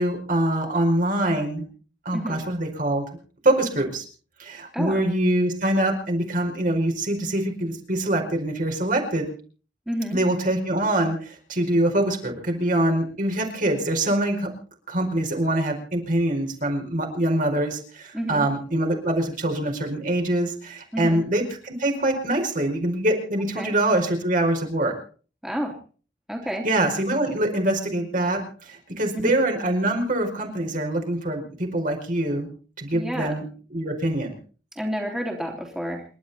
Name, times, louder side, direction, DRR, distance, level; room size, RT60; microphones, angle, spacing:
voice 1, 0.0-1.6 2.0-3.0 3.4-4.0 4.4-9.3 10.1-14.5 14.9-24.9 26.6-32.5 32.8-33.4 33.7-34.4, right 1 dB, 50° right, 3 dB, 4.9 m, -24 dB
voice 2, 9.9-10.2 18.1-18.5 20.9-21.2 23.6-23.7 25.4-25.7 26.3-26.6 29.1-29.3 32.9-33.4 34.7-36.0, equal, 5° right, 0 dB, 3.3 m, -29 dB
28.5 x 12.0 x 4.2 m, 0.40 s
head